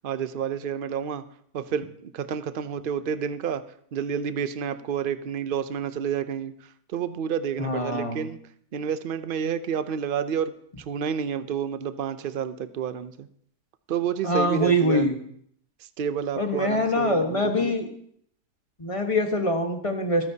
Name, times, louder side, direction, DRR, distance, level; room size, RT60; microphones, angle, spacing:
voice 1, 0.0-1.2 1.5-3.6 3.9-6.5 6.9-8.4 8.7-10.5 10.9-13.3 13.9-15.0 16.0-17.7, right 8 dB, 65° right, 12 dB, 0.5 m, -29 dB
voice 2, 7.6-8.3 14.2-15.1 16.4-17.9 18.8-20.3, equal, 20° left, 4 dB, 1.2 m, -24 dB
25.5 x 9.6 x 2.8 m, 0.65 s
omnidirectional pair, 1.6 m